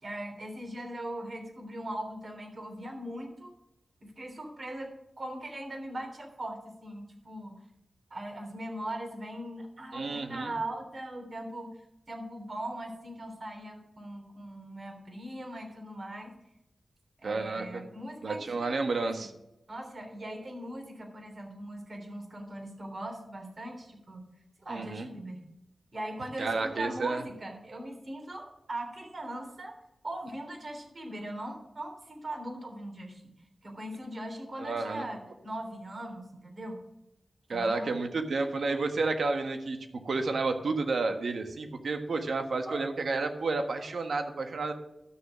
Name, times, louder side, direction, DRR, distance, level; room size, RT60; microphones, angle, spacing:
voice 1, 0.0-3.5 4.0-7.6 8.1-11.7 12.1-16.3 17.2-19.3 19.7-24.2 24.6-25.4 25.9-29.7 30.0-33.2 33.6-36.8 37.5-38.0 42.6-42.8, right 1 dB, 50° right, 3 dB, 3.3 m, -40 dB
voice 2, 9.9-10.5 17.2-17.8 18.2-19.3 24.7-25.1 26.4-27.2 34.6-35.0 37.5-39.8 40.0-44.7, right 3 dB, 75° right, 6 dB, 1.4 m, -31 dB
12.5 x 6.8 x 5.1 m, 0.87 s
cardioid pair, 65°, 0 cm